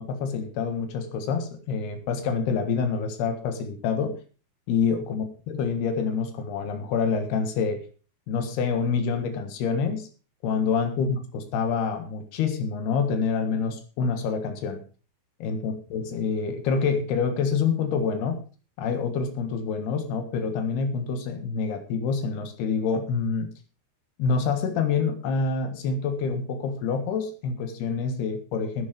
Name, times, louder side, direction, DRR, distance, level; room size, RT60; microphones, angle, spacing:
voice 1, 0.0-4.2 4.7-7.8 8.3-10.1 10.4-14.8 15.4-18.4 18.8-23.5 24.2-28.9, left 5 dB, 85° left, 7 dB, 3.6 m, -27 dB
12.0 x 9.8 x 5.2 m, 0.37 s
omnidirectional pair, 4.5 m